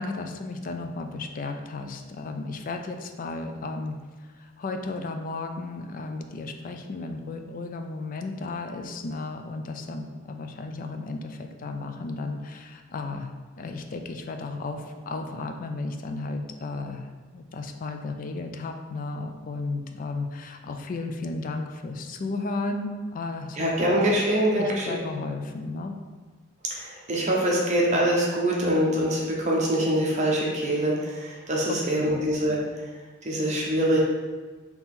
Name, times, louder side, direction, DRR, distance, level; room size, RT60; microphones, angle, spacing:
voice 1, 0.0-13.3 13.6-17.1 17.3-24.1 24.6-25.9 31.7-32.2, left 3 dB, 40° left, 5 dB, 0.3 m, -34 dB
voice 2, 23.6-24.9 26.7-32.6 33.2-34.0, right 1 dB, 35° right, -3 dB, 0.8 m, -24 dB
4.2 x 2.9 x 3.6 m, 1.4 s
head